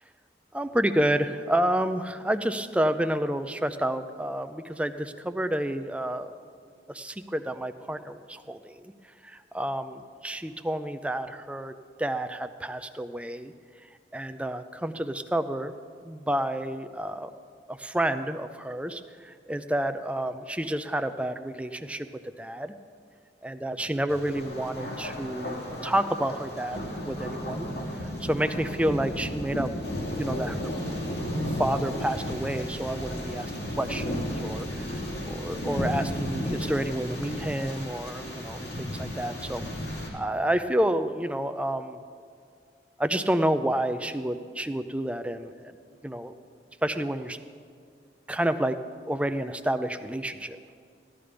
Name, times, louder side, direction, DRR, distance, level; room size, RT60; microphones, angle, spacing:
voice 1, 0.5-6.3 6.9-8.9 9.2-11.7 12.0-13.5 14.1-15.7 16.0-17.3 17.7-22.1 22.4-22.7 23.4-27.7 28.2-29.7 30.2-30.7 31.5-39.6 40.1-42.0 43.0-45.7 46.0-46.3 46.8-47.4 48.3-48.8 49.1-50.6, right 1 dB, 5° right, 9 dB, 0.4 m, -29 dB
Thunder, 24.1-40.1, equal, 75° left, 2.7 m, -33 dB
15.5 x 11.5 x 5.2 m, 2.1 s
head